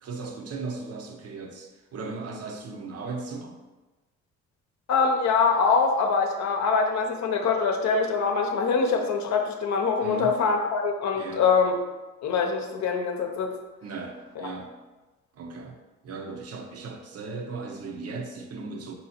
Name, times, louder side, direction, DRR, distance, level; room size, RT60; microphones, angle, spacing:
voice 1, 0.0-3.6 10.0-10.4 11.1-11.5 13.8-14.9 15.3-18.9, right 3 dB, 55° right, 3 dB, 0.8 m, -37 dB
voice 2, 4.9-11.7 12.2-13.5 14.4-14.5, left 5 dB, 65° left, 3 dB, 0.7 m, -24 dB
3.9 x 3.0 x 4.3 m, 1.2 s
cardioid pair, 90°, 30 cm